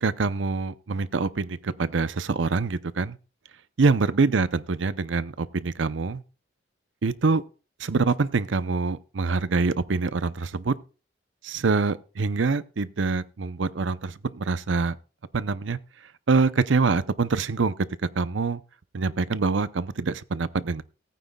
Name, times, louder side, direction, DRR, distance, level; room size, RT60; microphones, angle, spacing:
voice 1, 0.0-3.2 3.8-6.2 7.0-7.4 7.8-10.7 11.4-15.0 15.3-15.8 16.3-17.7 18.2-18.6 18.9-20.8, right 4 dB, 90° right, 0.6 m, -25 dB
19.0 x 9.3 x 2.3 m
head